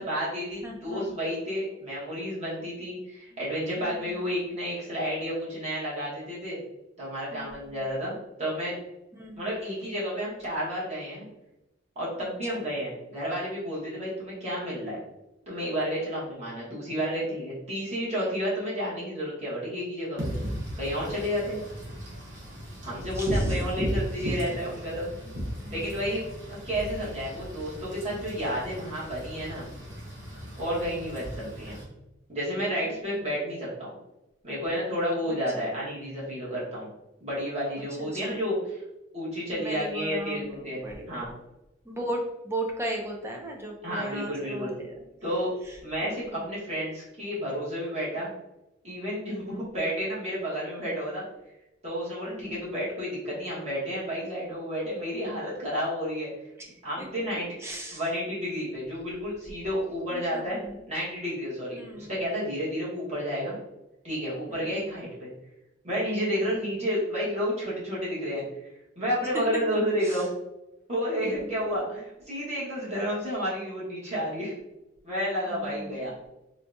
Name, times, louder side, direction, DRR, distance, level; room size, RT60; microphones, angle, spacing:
voice 1, 0.0-6.6 7.0-8.8 9.4-11.3 11.9-15.0 15.5-20.4 20.8-21.6 22.8-25.1 25.7-29.7 30.6-31.8 32.3-33.9 34.4-36.9 37.2-38.6 39.1-41.3 43.8-44.7 45.2-45.5 45.8-48.3 48.8-51.2 51.8-56.3 56.8-57.6 57.9-60.6 60.9-63.6 64.0-65.3 65.8-68.4 69.0-70.3 70.9-74.5 75.0-76.1, equal, 35° right, -7 dB, 1.3 m, -31 dB
voice 2, 0.6-1.1 3.3-3.4 3.8-4.3 7.3-7.9 9.2-9.5 12.2-12.6 23.0-23.6 24.5-24.6 25.2-26.0 31.4-31.5 32.7-33.3 35.3-35.7 38.0-38.4 39.5-41.3 41.8-44.9 45.6-46.4 49.3-49.7 52.3-52.7 56.6-56.7 57.0-57.1 57.6-58.0 60.1-60.8 61.8-62.2 64.5-64.9 66.3-66.4 70.0-70.2 71.2-71.8 75.5-76.1, right 1 dB, 15° right, 0 dB, 0.5 m, -38 dB
Wind / Rain, 20.2-31.8, equal, 65° right, 1.1 m, -35 dB
3.9 x 2.3 x 2.6 m, 0.95 s
head